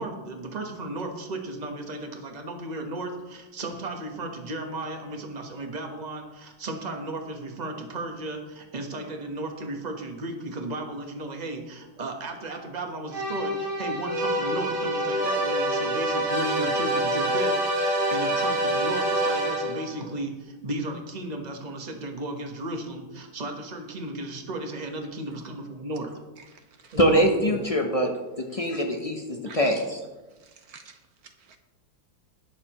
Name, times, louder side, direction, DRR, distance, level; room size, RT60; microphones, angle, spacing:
voice 1, 0.0-26.2 26.9-27.6, right 2 dB, 25° right, 3 dB, 1.1 m, -35 dB
sound 1, 13.1-20.0, right 1 dB, 90° right, 3.0 m, -26 dB
voice 2, 26.4-27.0 29.4-29.6 30.4-31.6, right 5 dB, 65° right, 6 dB, 1.0 m, -50 dB
voice 3, 27.0-28.1 28.4-30.0, equal, 50° left, 2 dB, 0.4 m, -23 dB
20.0 x 6.7 x 3.0 m, 1.1 s
omnidirectional pair, 2.1 m